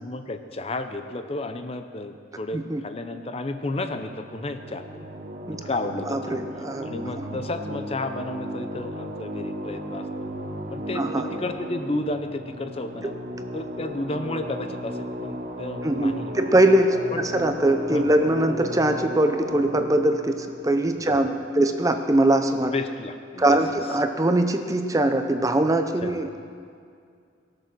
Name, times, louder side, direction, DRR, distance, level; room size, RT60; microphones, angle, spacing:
voice 1, 0.0-5.1 5.6-6.4 6.9-10.0 10.7-13.1 13.5-16.3 17.1-17.2 17.9-18.1 21.0-21.2 22.7-23.6 26.0-26.2, left 2 dB, 30° left, 8 dB, 0.6 m, -32 dB
sound 1, 3.6-21.8, equal, 45° right, 0.8 m, -35 dB
voice 2, 6.1-6.9 7.2-7.3 11.0-11.2 13.0-13.1 15.8-22.7 23.4-26.4, right 1 dB, 20° right, 7 dB, 0.5 m, -22 dB
18.0 x 6.8 x 6.1 m, 2.3 s
head